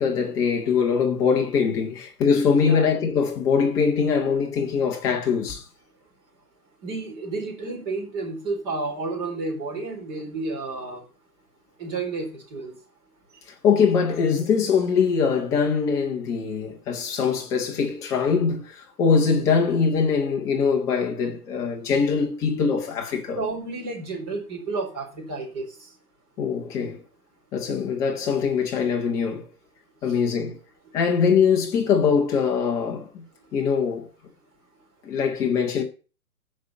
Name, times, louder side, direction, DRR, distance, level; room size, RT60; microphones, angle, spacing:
voice 1, 0.0-5.6 13.6-23.4 26.4-27.0 27.5-29.5 30.0-30.6 30.9-33.3 33.5-34.1 35.0-35.8, left 6 dB, 5° left, 0.6 m, -22 dB
voice 2, 2.5-2.9 6.8-11.0 11.8-12.7 23.3-25.9 30.1-30.2, right 3 dB, 25° right, 4.2 m, -31 dB
14.0 x 5.3 x 5.3 m
hypercardioid pair, 145°, 45 cm